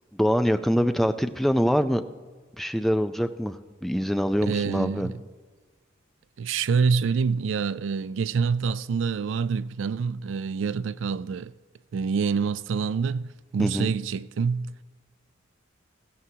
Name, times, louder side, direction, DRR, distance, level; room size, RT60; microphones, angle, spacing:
voice 1, 0.1-2.0 2.6-5.1 13.6-13.9, equal, ahead, 0.3 m, -24 dB
voice 2, 4.5-5.1 6.4-11.5 11.9-14.7, right 5 dB, 70° right, 0.3 m, -26 dB
17.0 x 14.5 x 2.8 m
head